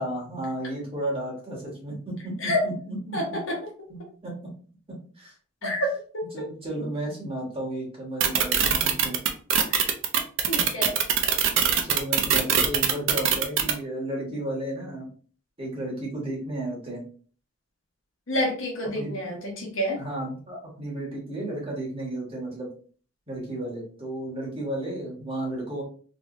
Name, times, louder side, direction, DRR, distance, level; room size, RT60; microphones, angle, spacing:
voice 1, 0.0-3.4 3.9-4.4 5.2-5.3 5.6-5.7 6.3-9.1 11.8-15.0 15.6-17.0 18.9-19.1 20.0-22.7 23.3-25.8, right 1 dB, 30° right, -4 dB, 1.5 m, -33 dB
voice 2, 3.1-3.6 5.6-6.2 10.5-10.9 18.3-20.0, left 1 dB, 70° left, -1 dB, 1.1 m, -28 dB
sound 1, 8.2-13.7, right 8 dB, 65° right, 0.5 m, -21 dB
3.1 x 3.0 x 2.6 m, 0.42 s
head